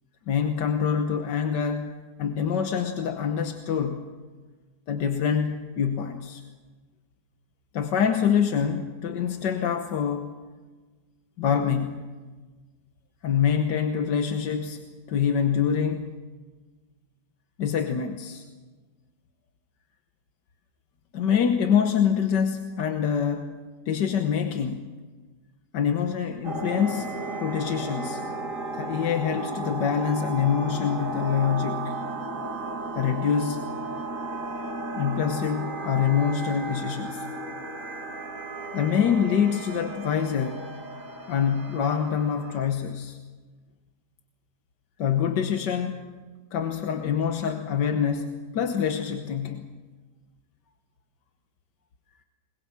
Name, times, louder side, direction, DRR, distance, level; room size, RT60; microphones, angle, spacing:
voice 1, 0.3-1.9 2.2-4.1 4.9-6.4 7.7-10.3 11.4-12.1 13.2-14.8 15.1-16.1 17.6-18.4 21.1-23.5 23.9-24.9 25.7-27.1 27.4-28.3 28.7-32.0 32.9-33.7 35.0-37.3 38.7-40.8 41.3-43.2 45.0-46.0 46.5-49.7, left 7 dB, 85° left, 5 dB, 1.8 m, -25 dB
sound 1, 26.4-42.7, right 2 dB, 50° right, 2.6 m, -34 dB
22.0 x 21.0 x 7.4 m, 1.4 s
omnidirectional pair, 1.8 m